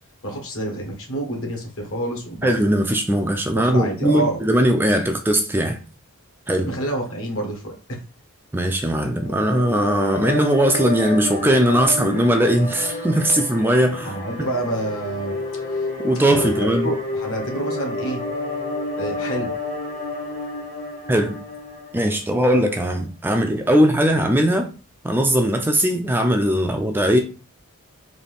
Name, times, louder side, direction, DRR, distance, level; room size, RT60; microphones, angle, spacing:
voice 1, 0.2-2.5 3.5-4.4 6.6-8.0 14.0-15.9 16.3-18.2 19.0-19.5, right 1 dB, 65° left, 1.4 m, -28 dB
voice 2, 2.4-5.8 6.5-6.7 8.5-14.2 16.0-16.9 21.1-21.4 21.9-24.7 25.0-27.2, right 1 dB, 10° right, 0.3 m, -19 dB
sound 1, 9.1-22.5, left 2 dB, 40° left, 0.9 m, -30 dB
3.9 x 2.6 x 3.4 m
head